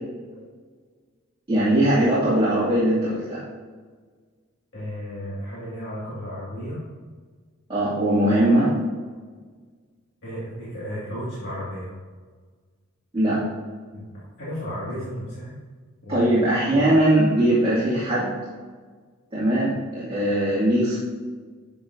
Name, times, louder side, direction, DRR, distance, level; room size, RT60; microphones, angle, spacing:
voice 1, 1.5-3.4 7.7-8.8 13.1-13.4 16.1-18.3 19.3-21.0, right 1 dB, 25° right, -10 dB, 2.4 m, -20 dB
voice 2, 4.7-6.9 10.2-11.9 13.9-14.1 14.4-15.6 16.0-16.3 16.7-16.9, equal, 60° left, -9 dB, 2.3 m, -33 dB
11.0 x 6.9 x 2.7 m, 1.5 s
head